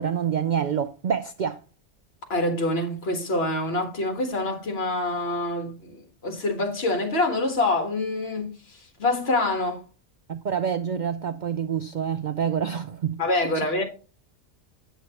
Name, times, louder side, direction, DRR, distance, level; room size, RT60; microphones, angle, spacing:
voice 1, 0.0-1.6 10.3-13.2 13.5-13.6, right 8 dB, 80° right, 0.4 m, -27 dB
voice 2, 2.3-9.8 13.2-13.8, left 2 dB, 50° left, 1.7 m, -26 dB
8.3 x 7.7 x 2.9 m
omnidirectional pair, 1.4 m